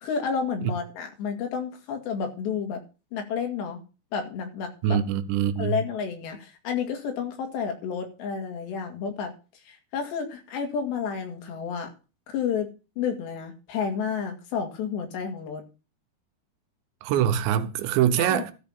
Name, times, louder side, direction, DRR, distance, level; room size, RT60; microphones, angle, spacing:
voice 1, 0.0-2.8 3.1-3.8 4.1-5.0 5.6-9.3 9.7-11.9 12.3-12.7 13.0-15.6 18.2-18.4, left 6 dB, 75° left, 4.2 m, -30 dB
voice 2, 4.8-5.8 17.0-18.5, right 10 dB, 80° right, 3.1 m, -24 dB
13.5 x 5.2 x 6.9 m
omnidirectional pair, 5.1 m